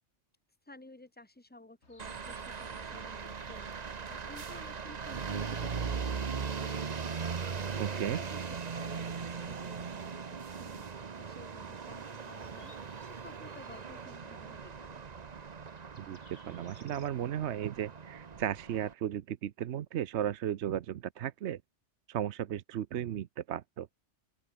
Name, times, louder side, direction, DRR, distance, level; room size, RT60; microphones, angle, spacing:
voice 1, 0.7-7.2 7.7-10.9 11.1-12.7 13.1-15.1, left 2 dB, 10° left, 1.7 m, -54 dB
sound 1, 1.8-17.1, left 3 dB, 70° left, 3.6 m, -64 dB
sound 2, 2.0-18.9, right 6 dB, 35° right, 0.9 m, -39 dB
voice 2, 7.8-8.2 16.0-21.6 22.1-23.9, right 10 dB, 70° right, 1.0 m, -35 dB
open air
omnidirectional pair, 1.3 m